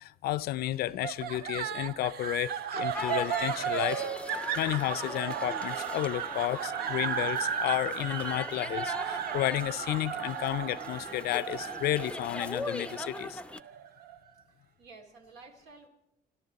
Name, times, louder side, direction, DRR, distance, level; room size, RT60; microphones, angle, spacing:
voice 1, 0.0-4.0 4.6-13.4, left 15 dB, 65° left, 0.5 m, -32 dB
sound 1, 1.0-14.2, right 9 dB, 65° right, 0.7 m, -35 dB
sound 2, 2.9-13.6, left 2 dB, 5° left, 0.5 m, -40 dB
voice 2, 14.5-15.9, right 3 dB, 85° right, 2.8 m, -53 dB
26.5 x 13.0 x 4.1 m
cardioid pair, 110°, 17 cm